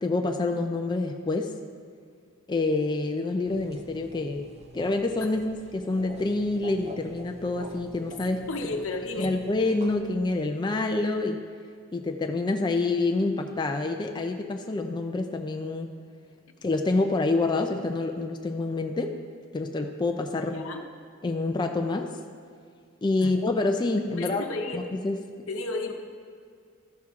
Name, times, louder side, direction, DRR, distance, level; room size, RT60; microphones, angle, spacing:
voice 1, 0.0-1.5 2.5-4.5 4.7-8.5 9.2-11.4 11.9-15.9 16.6-19.2 19.5-20.6 21.2-22.1 23.0-24.4 24.7-25.2, left 2 dB, 20° left, 4 dB, 0.4 m, -27 dB
sound 1, 3.5-10.0, right 1 dB, 30° right, 0.5 m, -47 dB
voice 2, 8.5-9.3 20.5-20.8 23.2-23.3 24.1-24.8 25.5-25.9, left 2 dB, 70° left, 4 dB, 0.9 m, -32 dB
12.5 x 6.1 x 3.6 m, 2.1 s
head